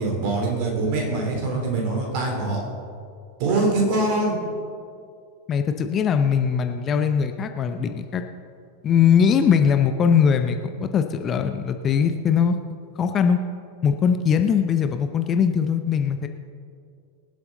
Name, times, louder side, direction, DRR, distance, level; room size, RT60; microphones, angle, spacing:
voice 1, 0.0-2.6 3.4-4.4, right 2 dB, 45° right, 0 dB, 3.6 m, -23 dB
voice 2, 5.5-8.2 8.8-12.6 13.0-13.4 13.8-16.3, left 7 dB, 25° left, 7 dB, 0.8 m, -21 dB
24.0 x 8.1 x 4.0 m, 2.3 s
figure-of-eight pair, 90°, 0 cm